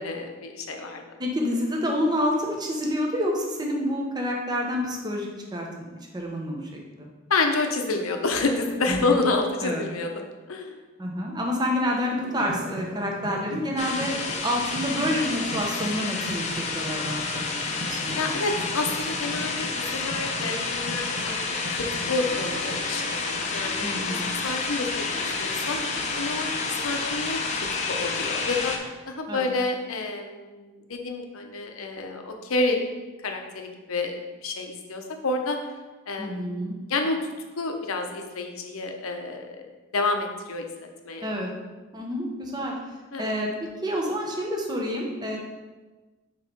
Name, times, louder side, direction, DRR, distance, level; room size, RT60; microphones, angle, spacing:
voice 1, 0.0-1.0 7.3-10.1 10.5-10.7 18.2-21.4 21.7-25.8 26.2-27.4 27.9-28.7 29.1-32.8 33.2-34.1 34.4-35.6 36.1-36.5 36.9-37.2 37.6-39.5 39.9-41.3 43.1-43.3, left 3 dB, 85° left, 4 dB, 0.8 m, -29 dB
voice 2, 1.2-5.7 6.1-7.1 8.9-9.2 9.6-9.8 11.0-14.1 14.4-18.3 23.8-24.3 29.3-29.5 36.2-36.8 41.2-41.5 41.9-42.7 43.2-45.4, equal, 20° right, 0 dB, 0.9 m, -28 dB
sound 1, 12.1-23.1, right 1 dB, 70° right, 0.8 m, -40 dB
sound 2, 13.8-28.8, left 4 dB, 35° left, 0.6 m, -30 dB
sound 3, 22.0-27.0, equal, 85° right, 1.3 m, -44 dB
6.4 x 3.1 x 5.2 m, 1.2 s
head